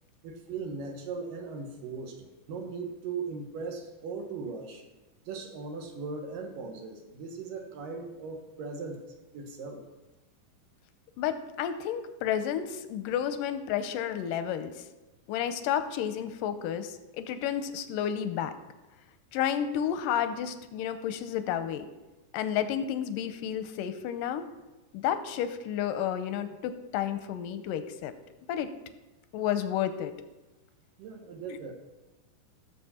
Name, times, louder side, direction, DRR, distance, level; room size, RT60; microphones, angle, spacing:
voice 1, 0.2-4.8 5.3-9.0 9.3-9.8 31.0-31.7, right 4 dB, 80° right, 3 dB, 3.0 m, -38 dB
voice 2, 11.2-14.7 15.3-18.5 19.3-21.9 22.3-24.5 24.9-28.1 28.5-28.7 29.3-30.1, left 9 dB, 85° left, 10 dB, 2.2 m, -31 dB
16.5 x 7.2 x 4.3 m, 1.1 s
omnidirectional pair, 3.9 m